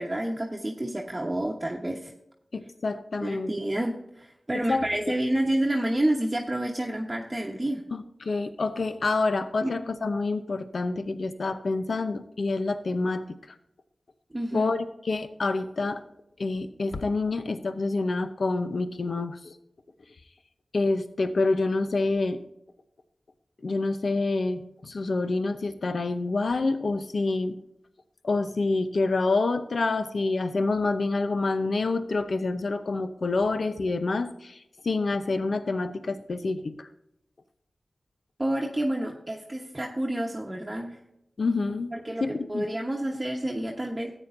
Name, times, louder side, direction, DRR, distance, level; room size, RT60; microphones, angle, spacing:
voice 1, 0.0-2.1 3.2-7.8 9.6-9.7 14.3-14.7 38.4-41.0 41.9-44.1, right 1 dB, 20° right, -1 dB, 1.1 m, -29 dB
voice 2, 2.5-3.5 4.5-5.2 7.9-13.4 14.5-16.0 16.4-19.5 20.7-22.4 23.6-27.6 28.2-36.9 41.4-41.9 42.2-42.6, left 3 dB, 70° left, 9 dB, 0.7 m, -27 dB
14.0 x 9.0 x 2.6 m, 0.83 s
wide cardioid pair, 60°, 0 cm